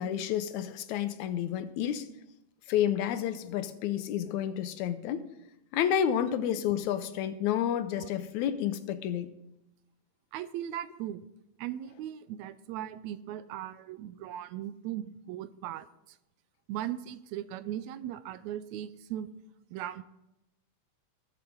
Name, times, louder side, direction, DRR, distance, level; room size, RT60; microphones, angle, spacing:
voice 1, 0.0-2.1 2.7-5.2 5.7-9.3, left 10 dB, 85° left, 11 dB, 2.1 m, -30 dB
voice 2, 10.3-11.3 11.6-15.9 16.7-19.3 19.7-20.0, right 11 dB, 80° right, 14 dB, 1.9 m, -38 dB
20.5 x 7.2 x 3.8 m, 0.87 s
omnidirectional pair, 3.3 m